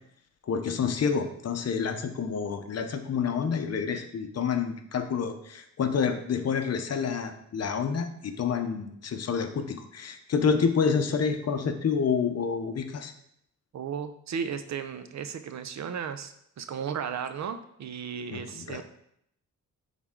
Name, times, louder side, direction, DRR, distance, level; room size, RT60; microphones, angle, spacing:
voice 1, 0.4-13.1 18.3-18.8, left 6 dB, 50° left, 7 dB, 0.8 m, -28 dB
voice 2, 13.7-18.8, right 7 dB, 60° right, 10 dB, 0.6 m, -35 dB
10.5 x 3.6 x 3.7 m, 0.73 s
wide cardioid pair, 135°, 32 cm